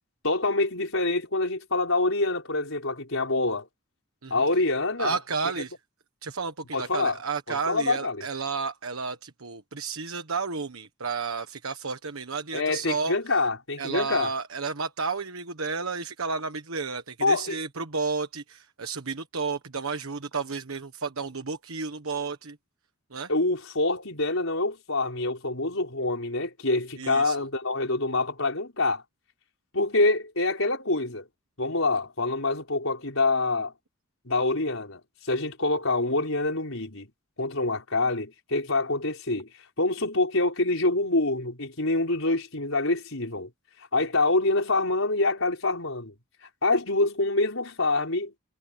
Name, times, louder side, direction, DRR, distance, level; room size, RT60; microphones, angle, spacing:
voice 1, 0.2-3.7 4.3-5.2 6.7-7.2 7.5-8.2 12.5-14.3 17.2-17.6 23.3-29.0 29.7-31.3 31.6-33.7 34.3-37.1 37.4-39.5 39.8-43.5 43.9-46.1 46.6-48.3, left 2 dB, 70° left, 5.6 m, -26 dB
voice 2, 5.0-5.7 6.2-13.4 13.8-22.6 23.1-23.3 27.0-27.4, right 4 dB, 80° right, 1.3 m, -32 dB
head